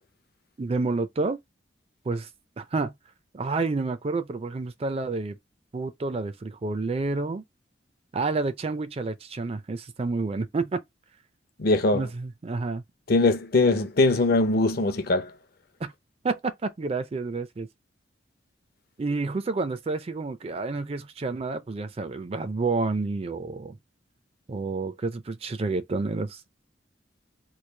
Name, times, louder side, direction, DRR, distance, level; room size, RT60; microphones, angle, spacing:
voice 1, 0.6-1.4 2.1-2.3 2.6-2.9 3.3-5.4 5.7-7.4 8.1-10.8 11.9-12.8 15.8-15.9 16.2-17.7 19.0-23.8 24.5-26.4, right 3 dB, 35° right, 0.4 m, -29 dB
voice 2, 11.6-12.0 13.1-15.3, left 2 dB, 55° left, 0.6 m, -21 dB
3.1 x 2.3 x 3.3 m
head